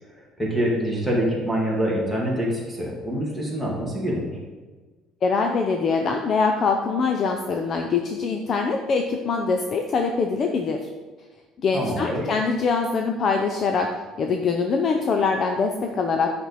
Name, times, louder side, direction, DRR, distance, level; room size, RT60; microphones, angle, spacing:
voice 1, 0.0-4.4 11.7-12.3, equal, 5° left, -3 dB, 1.9 m, -26 dB
voice 2, 5.2-10.8 11.6-13.9 14.2-16.3, left 4 dB, 35° left, 4 dB, 0.5 m, -23 dB
9.3 x 6.1 x 4.1 m, 1.3 s
cardioid pair, 175°, 0 cm